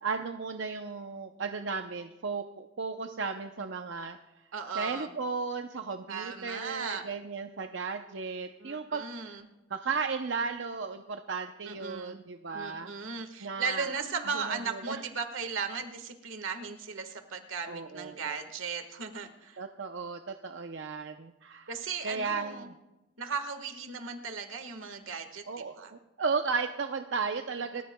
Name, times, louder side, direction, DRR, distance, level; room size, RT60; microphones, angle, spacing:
voice 1, 0.0-4.2 4.8-9.0 9.7-12.9 13.4-13.9 14.3-15.0 17.7-18.4 19.6-21.7 22.0-22.7 25.5-27.8, right 5 dB, 65° right, 5 dB, 0.6 m, -35 dB
voice 2, 4.5-5.1 6.1-7.0 8.6-9.5 11.7-12.2 12.5-19.6 21.7-22.7 23.2-25.9, right 5 dB, 85° right, 7 dB, 1.5 m, -37 dB
29.0 x 14.5 x 2.2 m, 1.0 s
head